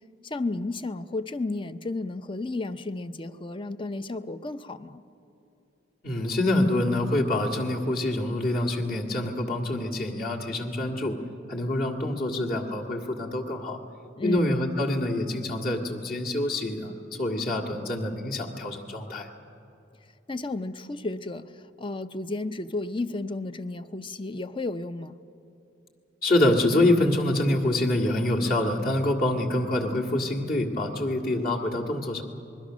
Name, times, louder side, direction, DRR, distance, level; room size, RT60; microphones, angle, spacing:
voice 1, 0.2-5.0 14.2-14.4 20.3-21.5 21.8-25.1, left 2 dB, 25° left, 0.6 m, -32 dB
voice 2, 6.0-11.2 11.5-13.8 14.2-16.9 17.2-19.3 26.2-32.2, left 1 dB, 50° left, 1.9 m, -26 dB
26.5 x 21.0 x 6.3 m
head